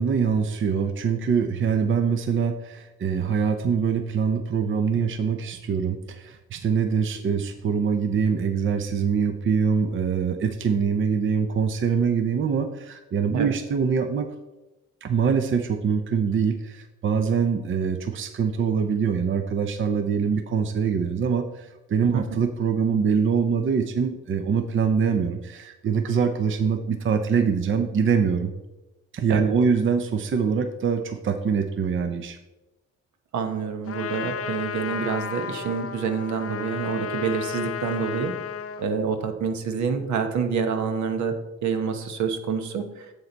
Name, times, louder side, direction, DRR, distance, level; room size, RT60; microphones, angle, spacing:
voice 1, 0.0-14.3 15.0-28.5 29.1-32.4, right 6 dB, 40° right, 7 dB, 0.7 m, -24 dB
voice 2, 33.3-38.4 38.8-43.1, right 6 dB, 70° right, 7 dB, 1.1 m, -27 dB
Trumpet, 33.9-38.9, left 7 dB, 50° left, 0.7 m, -33 dB
7.7 x 7.3 x 4.0 m, 1.0 s
cardioid pair, 90°, 30 cm